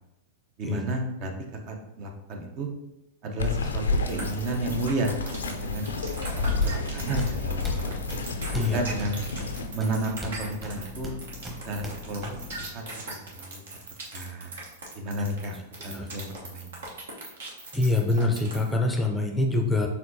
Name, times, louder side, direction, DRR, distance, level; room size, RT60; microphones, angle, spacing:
voice 1, 0.6-1.3 1.7-2.7 3.2-3.8 4.1-5.9 6.3-7.9 8.6-9.2 9.7-11.1 11.4-13.6 14.1-14.5 15.0-16.8, right 2 dB, 45° right, 3 dB, 0.7 m, -32 dB
Bird vocalization bird call bird song, 3.4-9.7, left 3 dB, 80° left, 0.4 m, -30 dB
sound 1, 4.1-18.7, right 3 dB, 75° right, 1.1 m, -40 dB
sound 2, 6.4-12.7, left 1 dB, 10° right, 1.0 m, -39 dB
voice 2, 17.7-19.9, left 2 dB, 10° left, 2 dB, 0.5 m, -25 dB
4.4 x 3.8 x 2.7 m, 0.93 s
hypercardioid pair, 105°, 0 cm